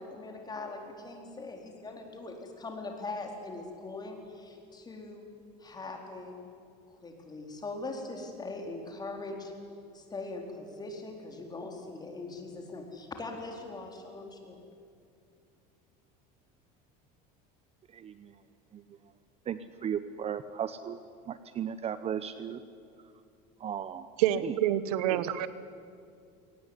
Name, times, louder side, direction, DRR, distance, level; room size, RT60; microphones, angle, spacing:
voice 1, 0.0-5.3 5.6-6.4 6.9-9.5 9.9-14.6, left 3 dB, 20° left, 3 dB, 4.3 m, -41 dB
voice 2, 17.9-18.3 18.7-18.8 19.5-21.0 21.3-22.6 23.6-24.1 24.4-24.5, right 8 dB, 30° right, 12 dB, 0.8 m, -35 dB
voice 3, 24.2-25.5, right 12 dB, 90° right, 15 dB, 1.2 m, -27 dB
21.5 x 19.0 x 9.8 m, 2.4 s
supercardioid pair, 120°, 19 cm